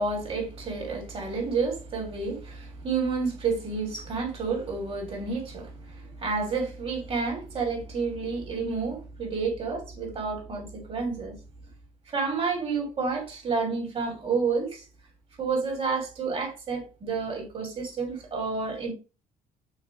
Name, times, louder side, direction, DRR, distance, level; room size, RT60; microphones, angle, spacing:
voice 1, 0.0-11.3 12.1-14.8 15.4-18.9, right 4 dB, 35° right, 3.3 m, -30 dB
6.4 x 3.1 x 5.0 m
cardioid pair, 110°, 17 cm